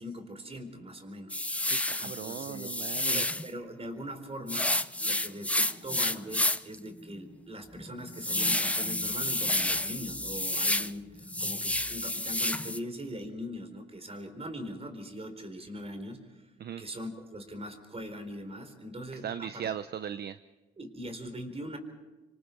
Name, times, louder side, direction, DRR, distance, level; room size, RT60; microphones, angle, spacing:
voice 1, 0.0-1.4 2.0-4.7 5.0-16.5 16.8-19.7 20.8-21.8, equal, 30° right, 6 dB, 4.2 m, -41 dB
sound 1, 1.3-3.5 4.5-6.7 7.2-7.3 7.7-10.9 11.2-12.8, left 1 dB, 5° left, 0.6 m, -30 dB
voice 2, 1.7-3.2 16.6-16.8 19.2-20.4, right 9 dB, 55° right, 12 dB, 0.7 m, -38 dB
26.0 x 25.5 x 4.7 m, 1.1 s
cardioid pair, 90°, 20 cm